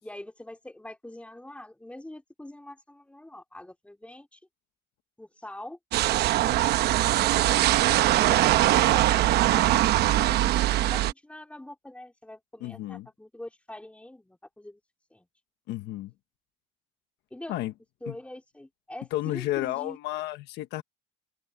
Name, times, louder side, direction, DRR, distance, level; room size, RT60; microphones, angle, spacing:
voice 1, 0.0-4.4 5.2-5.8 6.4-14.8 15.1-15.3 17.3-17.5 18.0-20.0, left 1 dB, 5° left, 3.4 m, -44 dB
sound 1, 5.9-11.1, right 14 dB, 75° right, 0.9 m, -22 dB
voice 2, 12.6-13.1 15.7-16.1 17.5-17.7 18.1-18.2 19.1-20.8, left 15 dB, 85° left, 1.3 m, -32 dB
open air
cardioid pair, 110°, 17 cm